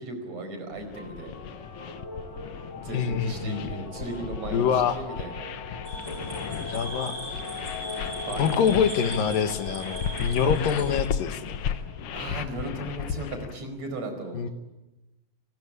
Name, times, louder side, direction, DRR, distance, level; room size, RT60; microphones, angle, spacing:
voice 1, 0.0-1.4 2.7-5.4 8.2-8.8 10.4-10.6 11.5-14.5, right 1 dB, 50° right, 7 dB, 5.9 m, -37 dB
sound 1, 0.7-13.6, left 8 dB, 65° left, 1.6 m, -35 dB
sound 2, 0.9-12.7, left 3 dB, 35° left, 6.4 m, -40 dB
voice 2, 2.9-3.8 4.5-5.0 6.7-7.1 8.4-11.6 14.3-14.5, left 7 dB, 90° left, 9 dB, 3.4 m, -25 dB
sound 3, 5.9-11.0, right 1 dB, 25° right, 8.2 m, -39 dB
29.0 x 19.0 x 9.9 m, 1.0 s
omnidirectional pair, 3.8 m